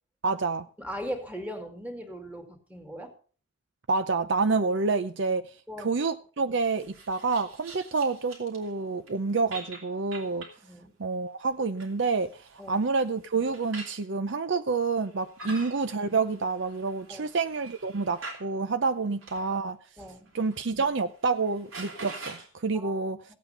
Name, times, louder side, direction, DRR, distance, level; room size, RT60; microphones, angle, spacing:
voice 1, 0.2-0.7 3.9-5.4 5.8-10.5 11.0-19.8 20.3-23.2, right 4 dB, 60° right, 0.6 m, -28 dB
voice 2, 0.8-3.1 5.7-5.9 10.6-10.9 12.6-12.8 15.4-15.6 17.1-17.3 20.0-20.3 22.7-23.0 23.3-23.4, equal, 5° right, 2.3 m, -39 dB
sound 1, 6.8-8.7 9.1-9.2 9.5-10.6 11.5-14.0 15.0-18.5 19.2-19.5 20.0-20.6 20.9-21.0 21.3-22.5, right 3 dB, 80° right, 3.4 m, -45 dB
16.0 x 8.5 x 5.5 m
head